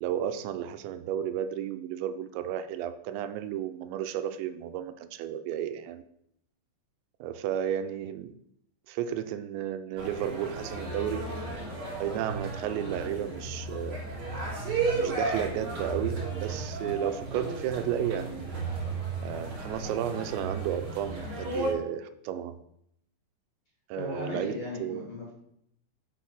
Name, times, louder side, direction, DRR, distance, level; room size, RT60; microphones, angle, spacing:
voice 1, 0.0-6.0 7.2-8.3 8.9-11.3 12.0-14.0 14.9-18.5 19.2-22.6 23.9-25.0, right 10 dB, 85° right, 10 dB, 2.9 m, -33 dB
sound 1, 10.0-21.7, right 3 dB, 45° right, 4.4 m, -34 dB
voice 2, 24.0-25.3, left 3 dB, 50° left, -5 dB, 2.0 m, -37 dB
9.1 x 4.5 x 5.9 m, 0.74 s
omnidirectional pair, 5.2 m